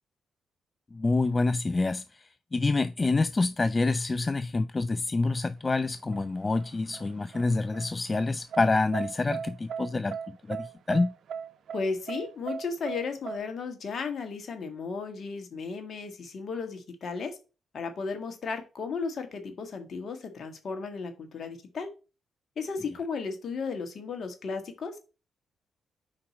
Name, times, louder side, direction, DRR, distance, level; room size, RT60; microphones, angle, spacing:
voice 1, 0.9-11.1, left 3 dB, 35° left, 0.3 m, -27 dB
sound 1, 5.7-13.4, right 7 dB, 65° right, 0.5 m, -38 dB
voice 2, 11.7-17.4 17.7-21.9 22.6-25.0, left 4 dB, 60° left, 1.5 m, -35 dB
5.1 x 4.2 x 6.0 m
hypercardioid pair, 45°, 0 cm